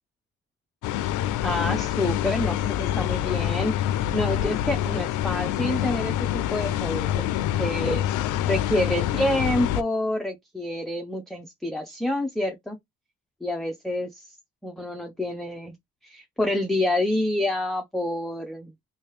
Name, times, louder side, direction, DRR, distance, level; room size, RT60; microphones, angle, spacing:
sound 1, 0.8-9.8, left 12 dB, 80° left, 0.5 m, -26 dB
voice 1, 1.4-7.3 7.6-12.8 13.4-14.2 14.6-15.7 16.0-18.7, left 1 dB, ahead, 0.5 m, -28 dB
3.2 x 2.8 x 3.0 m
cardioid pair, 90°, 30 cm